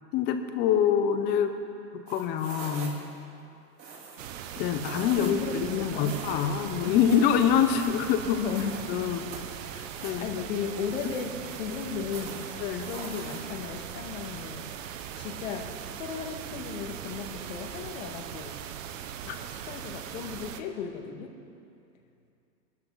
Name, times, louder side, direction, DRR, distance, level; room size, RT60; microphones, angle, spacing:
voice 1, 0.1-1.5 1.9-3.0 4.6-8.4 8.9-9.2 9.7-10.3 12.6-12.9 19.2-19.4, left 8 dB, 20° left, 8 dB, 0.7 m, -26 dB
sound 1, 2.1-3.2 3.8-5.5 6.0-9.0 9.3-10.2 10.9-13.8, right 4 dB, 85° right, 3.7 m, -44 dB
sound 2, 4.2-20.6, right 9 dB, 50° right, 1.0 m, -40 dB
voice 2, 5.2-6.2 6.6-7.0 8.4-8.7 9.9-12.4 12.8-14.7 15.2-15.7 15.9-18.5 19.7-21.3, left 7 dB, 50° left, 4 dB, 2.0 m, -35 dB
23.5 x 13.0 x 4.0 m, 2.5 s
hypercardioid pair, 145°, 49 cm